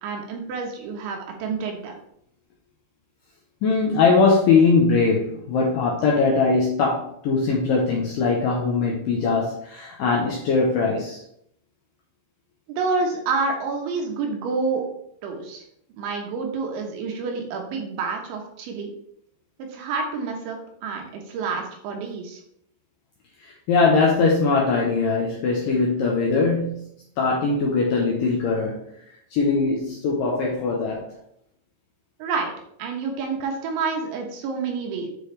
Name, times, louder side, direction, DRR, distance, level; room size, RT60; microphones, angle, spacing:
voice 1, 0.0-1.9 12.7-14.8 15.2-15.6 16.0-18.9 19.6-22.4 32.2-32.5 32.8-35.1, right 4 dB, 85° right, 2 dB, 3.7 m, -28 dB
voice 2, 3.6-11.2 23.4-26.9 27.2-28.8 29.3-31.1, left 4 dB, 75° left, -2 dB, 2.0 m, -21 dB
9.6 x 4.9 x 3.4 m, 0.70 s
omnidirectional pair, 5.2 m